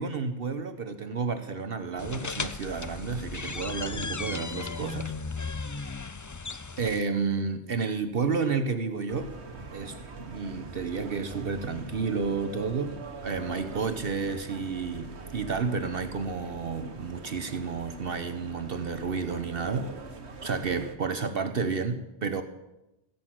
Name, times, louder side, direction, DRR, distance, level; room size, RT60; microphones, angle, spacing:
voice 1, 0.0-5.1 6.8-9.3 9.7-19.9 20.4-22.4, right 5 dB, 60° right, 9 dB, 1.2 m, -31 dB
sound 1, 2.0-7.0, left 4 dB, 30° left, 0.3 m, -35 dB
sound 2, 9.1-20.9, right 3 dB, 75° right, 1.7 m, -43 dB
15.5 x 10.5 x 7.6 m, 0.94 s
omnidirectional pair, 1.1 m